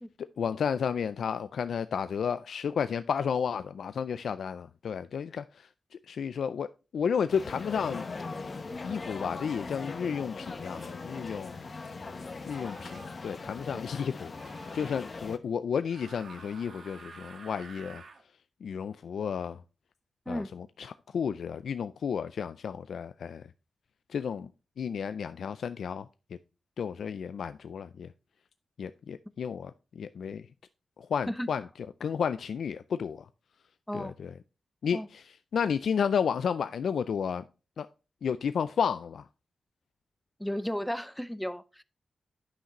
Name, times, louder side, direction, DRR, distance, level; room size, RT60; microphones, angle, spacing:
voice 1, 0.2-8.1 8.8-11.6 12.5-18.0 18.6-19.6 20.3-23.5 24.1-24.5 24.8-26.1 26.8-28.1 28.8-30.5 31.0-31.7 32.0-33.3 33.9-34.3 34.8-37.4 37.8-37.9 38.2-39.3, left 7 dB, 85° left, 0.3 m, -32 dB
sound 1, 7.3-15.4, left 3 dB, 45° left, 0.9 m, -40 dB
sound 2, 10.5-11.0 12.5-13.1 14.3-15.0 15.8-18.2, right 4 dB, 70° right, 1.4 m, -50 dB
voice 2, 40.4-41.8, equal, 5° left, 0.5 m, -34 dB
9.9 x 5.8 x 3.0 m
wide cardioid pair, 105°, 0 cm